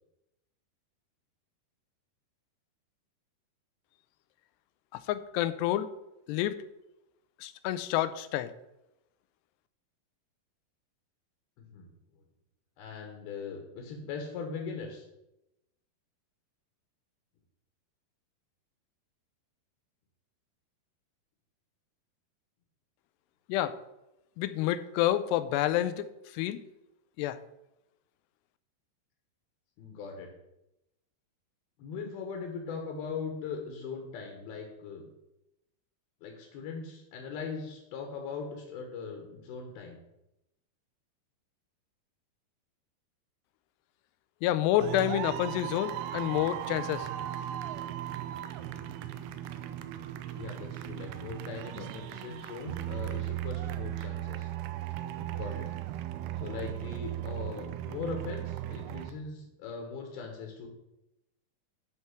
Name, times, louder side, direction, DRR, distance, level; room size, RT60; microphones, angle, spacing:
voice 1, 4.9-5.9 6.3-6.6 7.4-8.5 23.5-23.8 24.4-26.1 26.3-26.6 27.2-27.4 44.4-47.1, left 13 dB, 90° left, 14 dB, 2.7 m, -29 dB
voice 2, 12.8-15.1 29.8-30.3 31.8-35.1 36.2-40.0 50.4-54.5 55.3-55.7 56.4-60.7, left 5 dB, 75° left, 2 dB, 3.0 m, -40 dB
sound 1, 44.8-59.1, right 12 dB, 85° right, 2.8 m, -37 dB
12.0 x 4.5 x 5.9 m, 0.91 s
omnidirectional pair, 4.7 m